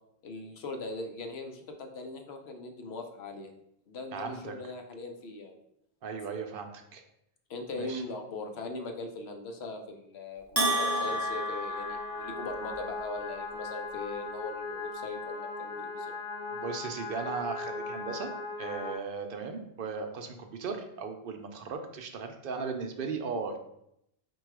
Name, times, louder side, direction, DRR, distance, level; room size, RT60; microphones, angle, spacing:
voice 1, 0.2-3.5 3.9-5.6 7.5-16.1, left 2 dB, 80° left, 4 dB, 0.9 m, -40 dB
voice 2, 4.1-4.7 6.0-7.0 7.8-8.0 16.5-18.3 18.6-23.6, right 5 dB, 65° right, 5 dB, 0.7 m, -37 dB
sound 1, 10.6-18.9, left 3 dB, 35° left, 0.6 m, -38 dB
Bell, 10.6-12.7, right 1 dB, 15° right, 0.6 m, -31 dB
4.5 x 2.3 x 4.5 m, 0.78 s
omnidirectional pair, 1.1 m